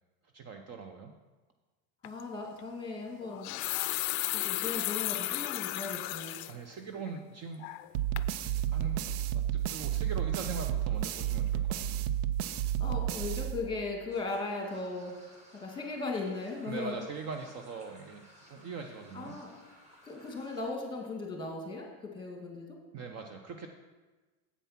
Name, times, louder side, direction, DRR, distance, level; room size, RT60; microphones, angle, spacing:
voice 1, 0.3-1.1 6.5-7.7 8.7-11.9 16.7-19.4 22.9-23.7, right 5 dB, 35° right, 5 dB, 0.7 m, -41 dB
sound 1, 2.0-2.2 3.2-6.5 7.0-7.1 7.6-8.3, left 18 dB, 50° left, 0.4 m, -34 dB
voice 2, 2.0-3.6 4.3-6.4 12.8-15.1 15.5-17.0 19.1-19.5 20.0-21.9 22.1-22.8, left 3 dB, 10° left, 1 dB, 2.0 m, -37 dB
sound 2, 7.9-14.1, right 11 dB, 85° right, 0.5 m, -31 dB
sound 3, 14.1-20.6, equal, 15° right, 2.3 m, -58 dB
8.4 x 5.4 x 5.8 m, 1.2 s
supercardioid pair, 115°, 43 cm